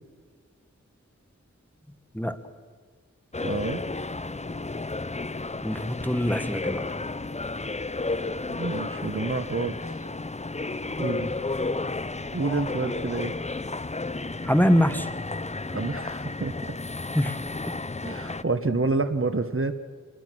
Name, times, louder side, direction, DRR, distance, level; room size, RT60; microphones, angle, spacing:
sound 1, 3.3-18.4, left 3 dB, 20° left, 0.6 m, -32 dB
voice 1, 3.4-3.8 8.5-9.8 11.0-11.3 12.3-13.3 15.7-16.5 18.0-19.7, right 3 dB, 45° right, 11 dB, 1.2 m, -28 dB
voice 2, 5.6-6.9 14.4-15.1 17.1-17.4, equal, 5° left, 9 dB, 1.3 m, -23 dB
27.0 x 21.0 x 6.1 m, 1.5 s
wide cardioid pair, 50°, 30 cm